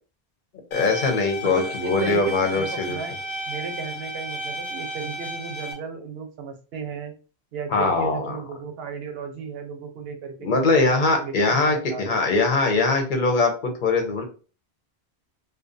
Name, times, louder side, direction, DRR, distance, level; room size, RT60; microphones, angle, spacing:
sound 1, 0.7-5.7, equal, 80° left, 0.9 m, -33 dB
voice 1, 0.7-3.0 7.7-8.4 10.4-14.3, left 3 dB, 55° left, 4 dB, 0.8 m, -22 dB
voice 2, 1.4-3.2 3.5-7.1 7.5-12.2, right 5 dB, 75° right, 6 dB, 0.8 m, -35 dB
2.5 x 2.2 x 2.5 m, 0.36 s
omnidirectional pair, 1.1 m